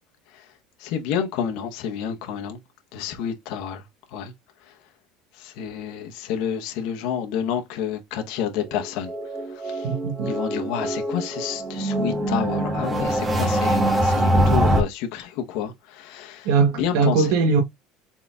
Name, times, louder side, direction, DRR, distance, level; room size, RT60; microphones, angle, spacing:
voice 1, 0.3-2.6 2.9-4.9 5.3-9.9 10.3-16.5 16.8-17.3, left 8 dB, 70° left, 0.9 m, -30 dB
sound 1, 8.7-14.8, right 1 dB, 15° right, 1.0 m, -23 dB
voice 2, 9.8-10.3 16.4-17.6, right 5 dB, 70° right, 0.9 m, -20 dB
4.1 x 4.0 x 2.3 m
supercardioid pair, 120°, 0 cm